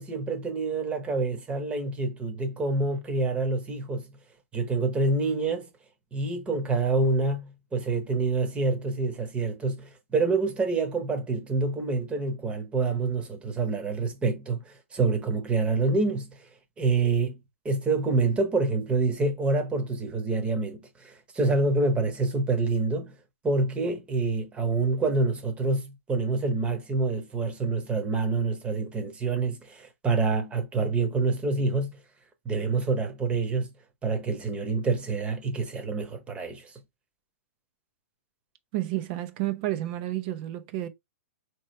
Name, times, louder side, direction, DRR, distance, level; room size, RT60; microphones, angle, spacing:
voice 1, 0.0-4.2 4.5-5.7 6.1-16.4 16.8-17.4 17.6-23.2 23.4-32.0 32.4-33.7 34.0-36.7, right 3 dB, 15° right, 1.1 m, -27 dB
voice 2, 38.7-40.9, right 15 dB, 45° right, 0.7 m, -30 dB
4.4 x 3.1 x 3.1 m
hypercardioid pair, 135°, 7 cm